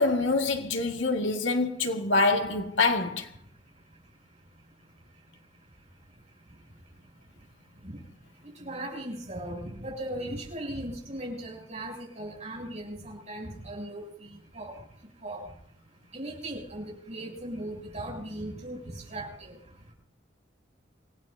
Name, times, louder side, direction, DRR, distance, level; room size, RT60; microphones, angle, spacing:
voice 1, 0.0-3.3, left 3 dB, 85° left, 1.8 m, -25 dB
voice 2, 0.9-1.3 1.8-1.9 3.3-19.9, right 1 dB, 35° right, 7.0 m, -40 dB
28.0 x 17.5 x 2.7 m
head